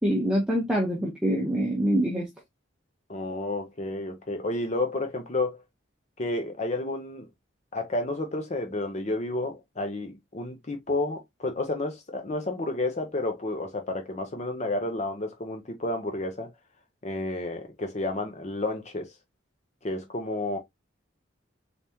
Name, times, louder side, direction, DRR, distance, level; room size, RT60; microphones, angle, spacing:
voice 1, 0.0-2.3, equal, 5° right, 1.1 m, -25 dB
voice 2, 3.1-5.6 6.2-7.3 7.7-16.5 17.0-19.1 19.8-20.6, left 2 dB, 35° left, 0.8 m, -31 dB
4.1 x 3.5 x 2.8 m
head